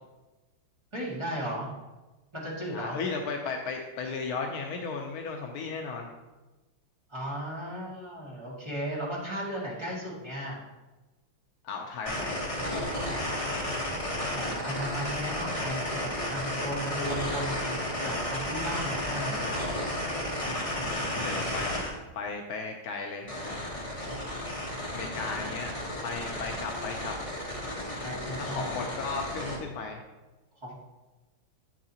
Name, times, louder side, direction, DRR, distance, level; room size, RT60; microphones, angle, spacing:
voice 1, 0.9-1.7 2.3-3.0 7.1-10.6 14.3-19.4 25.3-25.5 28.0-28.7 30.6-30.7, equal, 15° right, -6 dB, 1.9 m, -36 dB
voice 2, 2.7-6.1 11.6-12.5 19.1-19.6 20.8-21.8 22.1-23.6 24.9-25.7 26.0-27.1 28.4-30.0, left 4 dB, 70° left, 2 dB, 0.9 m, -35 dB
sound 1, 12.1-21.9 23.3-29.6, left 1 dB, 20° left, 0.9 m, -33 dB
7.9 x 7.5 x 2.9 m, 1.1 s
omnidirectional pair, 2.3 m